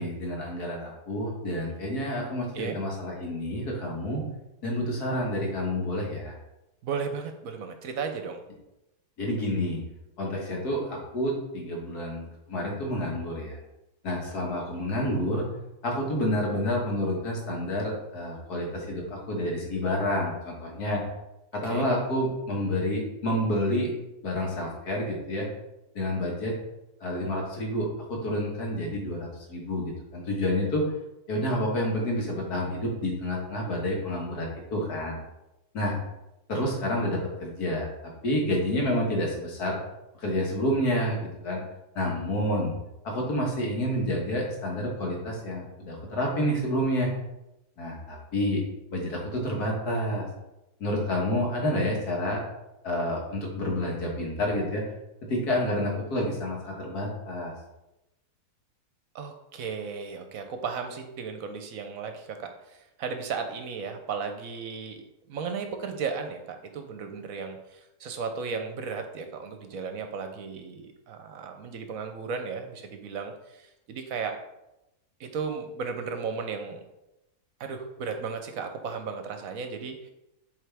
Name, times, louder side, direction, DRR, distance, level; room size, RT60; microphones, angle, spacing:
voice 1, 0.0-4.2 4.6-6.3 9.2-9.8 10.2-13.6 14.0-15.4 15.8-21.0 21.5-23.9 24.2-25.5 26.0-26.5 27.0-30.9 31.3-35.2 35.7-36.0 36.5-37.9 38.2-39.8 40.2-41.6 42.0-42.8 43.0-47.1 47.8-48.6 48.9-50.3 50.8-52.4 52.8-54.8 55.3-57.5, left 1 dB, 75° left, -1 dB, 1.9 m, -29 dB
voice 2, 6.8-8.4 21.6-21.9 59.1-65.0 65.3-74.3 75.2-76.8 77.6-80.1, right 5 dB, 70° right, 6 dB, 1.0 m, -35 dB
7.7 x 3.6 x 3.4 m, 0.92 s
omnidirectional pair, 1.7 m